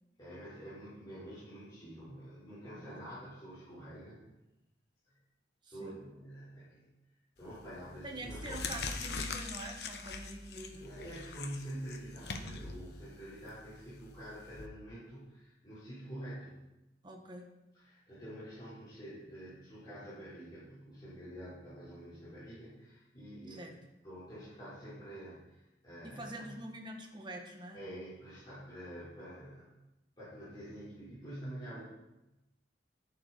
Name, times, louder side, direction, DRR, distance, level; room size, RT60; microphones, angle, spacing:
voice 1, 0.2-4.2 5.7-6.9 7.4-8.6 10.7-16.5 17.7-23.8 24.0-26.6 27.7-29.7 30.2-31.9, right 1 dB, 25° left, -13 dB, 5.3 m, -47 dB
voice 2, 5.6-6.0 8.0-10.9 17.0-17.5 23.5-23.7 26.0-27.8, right 1 dB, 25° right, 2 dB, 1.6 m, -45 dB
sound 1, 7.4-7.7 8.2-14.7, left 4 dB, 65° left, 1.1 m, -42 dB
11.0 x 11.0 x 4.7 m, 0.95 s
head